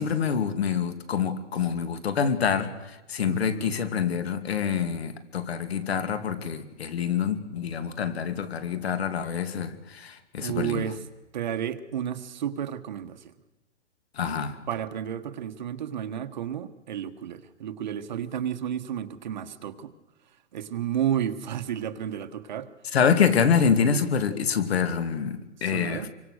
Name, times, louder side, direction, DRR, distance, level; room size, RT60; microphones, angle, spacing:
voice 1, 0.0-10.9 14.2-14.6 22.9-26.1, left 7 dB, 60° left, 2.6 m, -26 dB
voice 2, 3.3-3.7 10.4-11.0 11.3-13.3 14.7-19.9 20.5-22.7 25.6-26.1, right 9 dB, 40° right, 1.3 m, -32 dB
26.5 x 24.0 x 6.5 m
hypercardioid pair, 180°, 36 cm